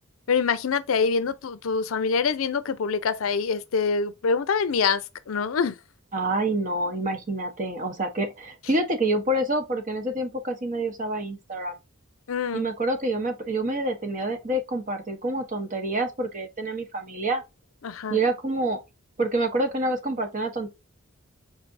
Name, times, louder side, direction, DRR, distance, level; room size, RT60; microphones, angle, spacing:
voice 1, 0.3-5.8 12.3-12.6 17.8-18.2, left 5 dB, 70° left, 0.5 m, -25 dB
voice 2, 6.1-11.8 12.5-17.4 18.1-18.8 19.2-20.7, right 2 dB, 40° right, 0.9 m, -27 dB
4.8 x 3.3 x 2.6 m
head